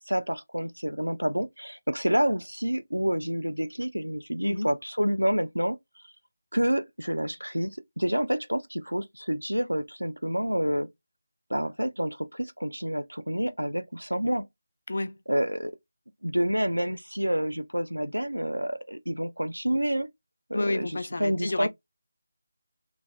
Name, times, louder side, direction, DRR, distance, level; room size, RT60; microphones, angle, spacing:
voice 1, 0.1-5.8 6.5-10.9 11.5-14.5 15.3-15.8 16.2-20.1 20.5-21.7, equal, 90° right, 0.4 m, -28 dB
voice 2, 14.9-15.2 20.5-21.7, left 2 dB, 55° left, 0.3 m, -30 dB
3.1 x 2.1 x 2.4 m
figure-of-eight pair, 160°, 0 cm